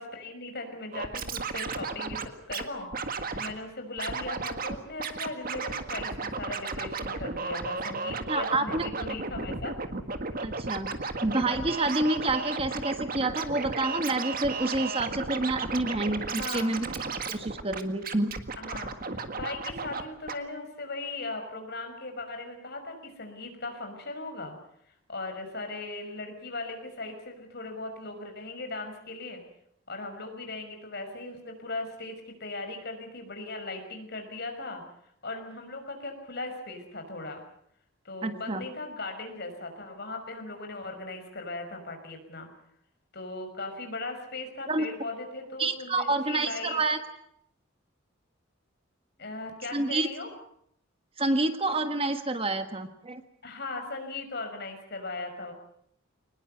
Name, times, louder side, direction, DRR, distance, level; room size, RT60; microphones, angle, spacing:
voice 1, 0.0-9.8 16.3-16.8 18.6-24.6 25.1-29.4 29.9-34.8 35.2-37.4 38.0-42.5 43.1-46.8 49.2-50.3 53.4-55.5, left 2 dB, 55° left, 5 dB, 5.8 m, -38 dB
Scratching (performance technique), 0.9-2.6 2.9-3.5 4.0-4.7 5.0-20.0 20.3-20.4, right 4 dB, 45° right, 1.7 m, -34 dB
voice 2, 8.3-8.8 10.4-16.9 17.3-18.3 38.2-38.6 44.7-44.9 45.6-47.0 49.7-50.1 51.2-53.2, right 2 dB, 30° right, 8 dB, 1.4 m, -28 dB
23.5 x 20.5 x 8.0 m, 0.71 s
head